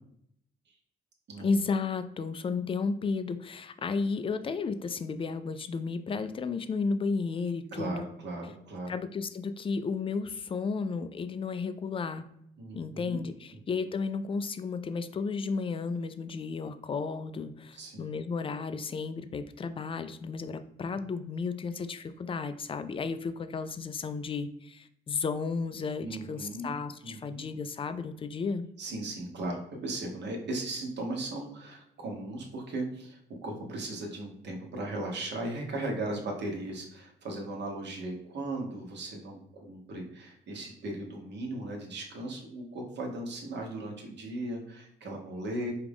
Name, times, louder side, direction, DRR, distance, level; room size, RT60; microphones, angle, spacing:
voice 1, 1.4-8.1 8.9-12.2 12.7-28.7, left 4 dB, 25° left, 11 dB, 0.4 m, -33 dB
voice 2, 7.7-8.9 12.6-13.2 17.7-18.2 26.0-26.7 27.0-27.4 28.8-45.7, right 2 dB, 60° right, 0 dB, 1.2 m, -37 dB
4.9 x 2.4 x 3.5 m, 0.74 s
cardioid pair, 90°, 20 cm